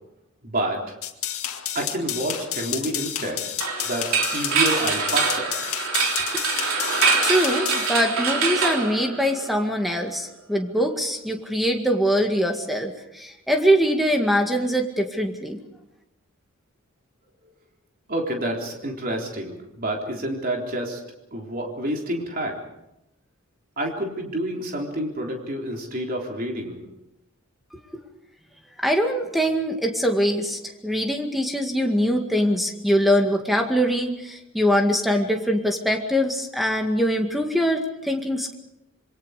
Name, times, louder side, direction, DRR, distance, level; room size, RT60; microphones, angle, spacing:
voice 1, 0.4-1.0 1.7-3.4 3.9-5.5 18.1-21.0 21.3-22.6 23.8-26.8, right 1 dB, 40° right, 0 dB, 3.8 m, -28 dB
sound 1, 1.0-7.9, left 11 dB, 75° left, 2.1 m, -30 dB
sound 2, 3.6-9.6, right 5 dB, 70° right, 3.6 m, -24 dB
voice 2, 7.2-15.6 28.8-38.5, equal, ahead, 3 dB, 2.0 m, -23 dB
26.5 x 23.0 x 5.1 m, 0.89 s
head